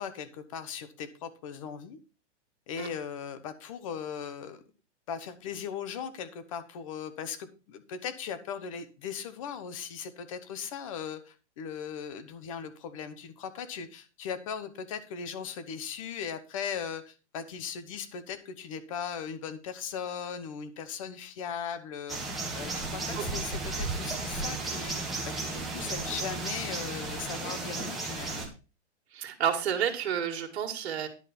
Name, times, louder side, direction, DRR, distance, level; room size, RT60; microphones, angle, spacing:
voice 1, 0.0-2.0 2.7-4.6 5.1-22.2 22.5-28.5, left 7 dB, 30° left, 11 dB, 1.0 m, -38 dB
sound 1, 22.1-28.5, right 3 dB, ahead, 0.8 m, -34 dB
voice 2, 29.1-31.1, right 8 dB, 65° right, 3 dB, 2.0 m, -30 dB
11.0 x 5.2 x 5.8 m, 0.33 s
hypercardioid pair, 175°, 35 cm